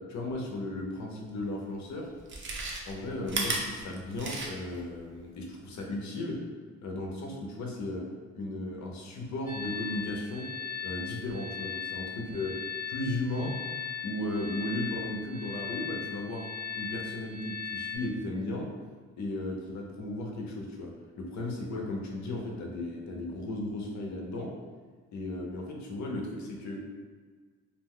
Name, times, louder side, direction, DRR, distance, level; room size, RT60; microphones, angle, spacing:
voice 1, 0.0-2.1 2.9-6.4 6.8-8.0 8.3-10.5 10.8-12.6 12.9-13.5 14.0-16.4 16.7-18.7 19.2-24.5 25.1-26.8, left 1 dB, 65° left, 0 dB, 0.7 m, -35 dB
Chewing mastication, 1.4-1.5 2.2-4.8 5.2-5.3, right 3 dB, 40° right, 0.6 m, -34 dB
sound 1, 9.5-18.0, left 7 dB, 30° left, 0.7 m, -38 dB
2.6 x 2.1 x 3.6 m, 1.5 s
cardioid pair, 90°, 30 cm